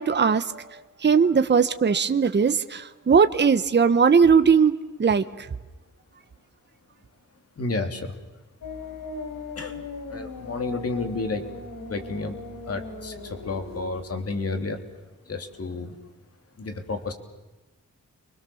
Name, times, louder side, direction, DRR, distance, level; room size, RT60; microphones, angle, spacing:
voice 1, 0.0-4.7 5.0-5.2, right 6 dB, 35° right, 10 dB, 1.0 m, -19 dB
voice 2, 7.6-8.1 9.6-9.8 10.1-11.4 11.9-12.4 12.7-14.8 15.3-15.9 16.6-17.1, left 3 dB, 45° left, 6 dB, 3.3 m, -31 dB
sound 1, 8.6-13.9, left 3 dB, 75° left, 4.9 m, -38 dB
29.5 x 25.0 x 7.1 m, 1.1 s
wide cardioid pair, 150°, 33 cm